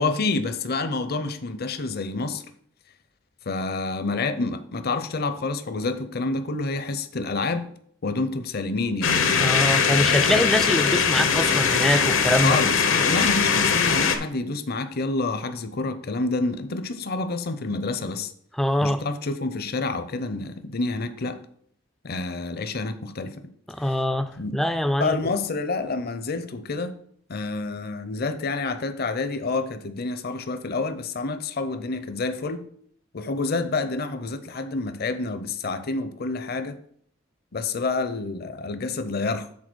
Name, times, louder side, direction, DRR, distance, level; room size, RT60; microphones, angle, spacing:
voice 1, 0.0-2.4 3.5-7.7 8.0-9.2 12.4-18.3 18.8-21.4 22.0-23.3 23.8-24.0 24.4-24.5 25.0-27.0 27.3-32.7 33.1-36.8 37.5-39.5, left 3 dB, 50° left, 0.6 m, -28 dB
sound 1, 9.0-14.2, left 6 dB, 75° left, 0.9 m, -21 dB
voice 2, 9.4-12.6 18.6-19.0 23.8-25.3, left 1 dB, ahead, 0.3 m, -24 dB
7.5 x 4.0 x 6.2 m
head